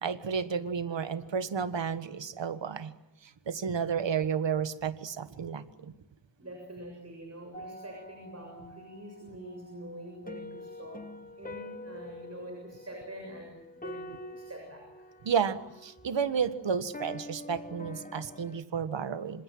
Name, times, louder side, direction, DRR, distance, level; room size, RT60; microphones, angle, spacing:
voice 1, 0.0-2.9 3.5-5.9 15.2-19.4, right 6 dB, 90° right, 12 dB, 1.5 m, -32 dB
voice 2, 6.4-11.1 11.4-15.1, right 1 dB, 35° right, 2 dB, 6.7 m, -45 dB
sound 1, 7.5-18.6, left 1 dB, 20° left, 1.3 m, -46 dB
27.0 x 26.5 x 7.8 m, 0.88 s
wide cardioid pair, 110°, 43 cm